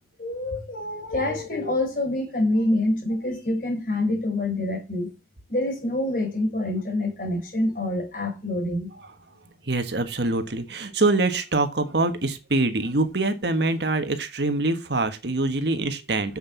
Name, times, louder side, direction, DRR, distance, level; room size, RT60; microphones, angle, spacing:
voice 1, 0.2-5.1 5.5-8.9, left 1 dB, 50° left, 4.4 m, -26 dB
voice 2, 9.7-16.4, right 2 dB, 70° right, 1.4 m, -24 dB
7.6 x 6.6 x 7.0 m
head